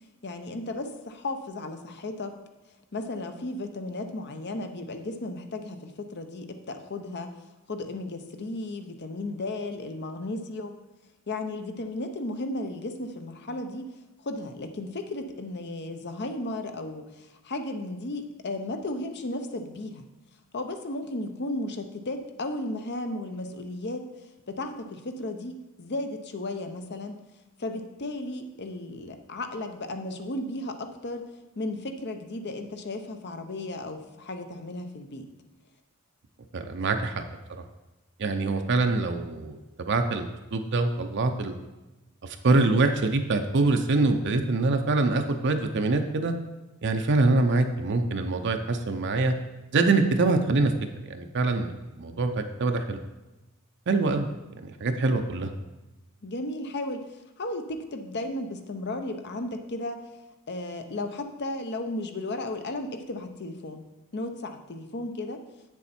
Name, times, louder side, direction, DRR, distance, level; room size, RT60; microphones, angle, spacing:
voice 1, 0.2-2.4 2.9-7.3 7.7-10.8 11.3-13.9 14.2-20.0 20.5-24.1 24.5-27.2 27.6-31.3 31.6-35.3 56.2-60.0 60.5-63.8 64.1-65.4, left 2 dB, 50° left, 7 dB, 0.8 m, -34 dB
voice 2, 36.5-37.2 38.2-41.6 42.2-46.3 46.8-49.3 49.7-50.7 51.1-53.0 53.9-54.3 54.6-55.5, right 3 dB, 55° right, 6 dB, 0.6 m, -24 dB
7.9 x 7.0 x 4.3 m, 1.1 s
head